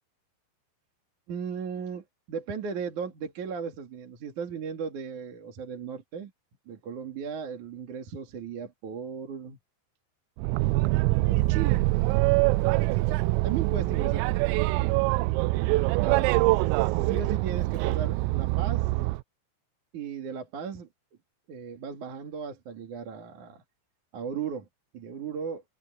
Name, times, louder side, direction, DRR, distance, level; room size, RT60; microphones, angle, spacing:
voice 1, 1.3-6.3 6.7-9.6 11.3-11.8 13.0-13.2 13.4-14.7 16.0-16.4 16.8-18.9 19.9-20.9 21.5-23.6 24.1-24.7 24.9-25.6, right 6 dB, 45° right, 3.2 m, -36 dB
Boat Water vehicle, 10.4-19.2, right 21 dB, 90° right, 3.2 m, -24 dB
omnidirectional pair, 5.8 m